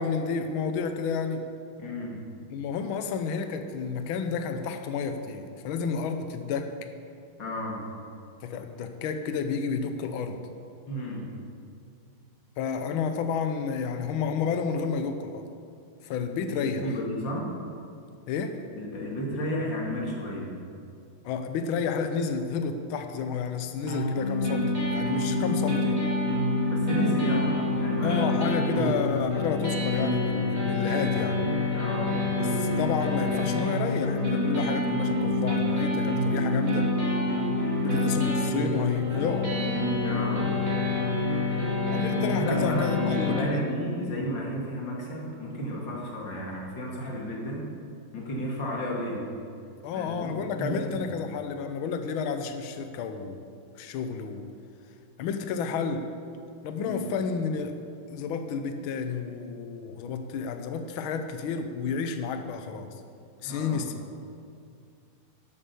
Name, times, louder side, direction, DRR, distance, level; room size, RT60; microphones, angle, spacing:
voice 1, 0.0-1.5 2.5-6.9 8.4-10.4 12.6-15.5 16.0-16.9 18.3-18.6 21.2-26.0 27.3-27.5 28.0-31.5 32.4-36.9 37.8-39.6 41.9-43.6 49.8-53.4 53.8-54.5 55.2-56.1 56.6-57.8 58.1-62.9 63.4-64.0, left 5 dB, 75° left, 7 dB, 1.6 m, -31 dB
voice 2, 1.8-2.2 7.4-7.8 10.9-11.3 16.8-17.5 18.7-20.5 26.7-29.0 31.7-32.2 37.8-38.2 40.0-40.5 42.3-47.7 48.1-49.3 49.9-51.0 56.8-57.0 63.4-63.9, equal, 55° left, -2 dB, 3.0 m, -33 dB
sound 1, 23.9-43.4, left 2 dB, 20° right, 2.6 m, -27 dB
sound 2, 32.3-42.8, right 5 dB, 75° right, 2.0 m, -40 dB
11.0 x 9.0 x 6.9 m, 2.4 s
omnidirectional pair, 2.4 m